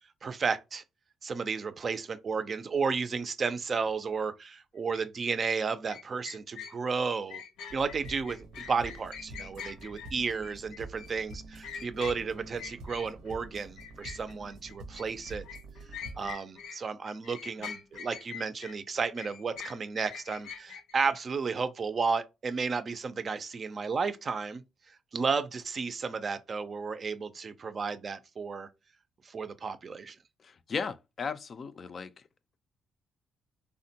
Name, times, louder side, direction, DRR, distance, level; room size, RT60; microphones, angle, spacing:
voice 1, 0.2-0.8 1.2-7.4 7.7-15.4 16.2-28.7 29.2-30.2, right 5 dB, 40° right, 0.4 m, -33 dB
sound 1, 4.9-5.1 5.9-13.4 13.8-16.8 17.0-20.9, left 7 dB, 85° left, 0.7 m, -44 dB
sound 2, 7.7-16.3, right 2 dB, 85° right, 0.7 m, -47 dB
voice 2, 30.4-32.1, left 5 dB, 45° left, 0.3 m, -36 dB
3.4 x 2.1 x 2.7 m
cardioid pair, 90°, 0 cm